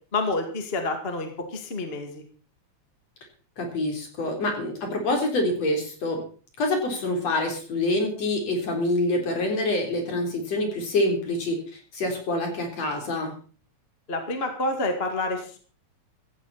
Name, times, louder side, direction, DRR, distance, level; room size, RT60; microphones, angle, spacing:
voice 1, 0.1-2.2 14.1-15.6, left 2 dB, 20° left, 4 dB, 2.2 m, -28 dB
voice 2, 3.6-6.2 6.6-13.3, left 2 dB, 60° left, 2 dB, 5.0 m, -26 dB
17.0 x 15.0 x 4.3 m, 0.40 s
omnidirectional pair, 3.3 m